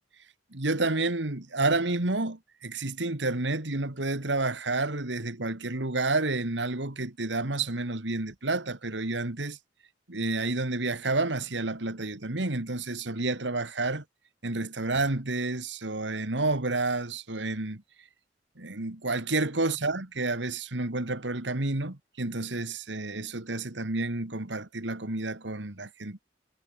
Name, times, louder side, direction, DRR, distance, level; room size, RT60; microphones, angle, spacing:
voice 1, 0.5-9.6 10.1-14.0 14.4-17.8 18.6-26.2, right 2 dB, 75° right, 2.2 m, -30 dB
head